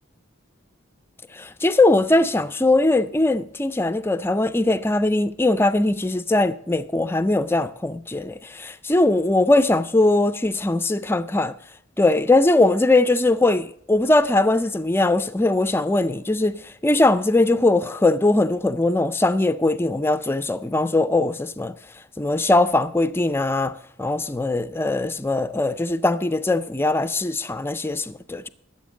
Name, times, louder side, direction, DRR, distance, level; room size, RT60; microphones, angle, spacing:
voice 1, 1.3-11.5 12.0-21.7 22.2-28.5, left 2 dB, 10° left, 0.4 m, -20 dB
12.5 x 7.7 x 6.3 m
head